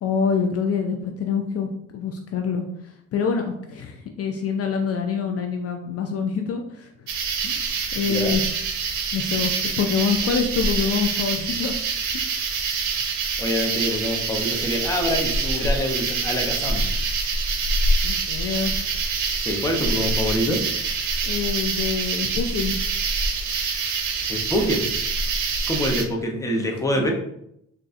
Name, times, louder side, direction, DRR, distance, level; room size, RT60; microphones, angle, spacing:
voice 1, 0.0-3.4 3.7-6.9 7.4-8.4 9.1-9.5 9.8-11.7 12.1-12.2 18.0-18.7 21.2-22.8 26.9-27.1, left 6 dB, 50° left, 4 dB, 0.4 m, -26 dB
sound 1, 7.1-26.0, right 4 dB, 70° right, 0.6 m, -25 dB
voice 2, 8.0-8.4 12.7-13.0 13.4-16.9 19.4-20.6 24.1-24.9 25.7-27.1, equal, 10° left, 1 dB, 0.7 m, -25 dB
4.0 x 2.3 x 2.5 m, 0.76 s
cardioid pair, 90°, 30 cm